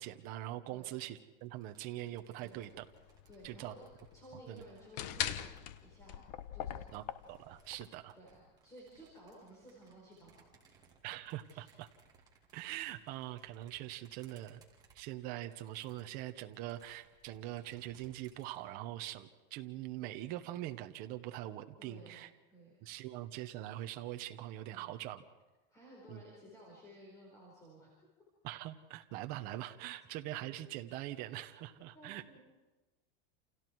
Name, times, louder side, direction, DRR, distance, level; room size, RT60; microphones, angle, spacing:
voice 1, 0.0-2.8 3.4-3.7 4.5-4.6 6.9-8.1 11.0-11.9 12.5-14.6 14.9-22.3 22.8-25.2 26.1-26.2 28.4-32.2, right 14 dB, 30° right, 7 dB, 1.0 m, -43 dB
sound 1, 1.4-6.2 6.8-18.6, right 4 dB, 15° right, 2.7 m, -67 dB
sound 2, 2.5-7.8, left 11 dB, 45° left, 1.1 m, -42 dB
voice 2, 3.3-3.8 4.1-5.5 5.8-6.3 6.5-7.0 8.1-10.5 11.5-11.7 21.8-22.2 22.5-22.9 24.7-25.0 25.7-27.9 31.9-32.4, equal, 10° left, -4 dB, 4.9 m, -55 dB
29.0 x 28.5 x 4.7 m, 1.2 s
supercardioid pair, 175°, 29 cm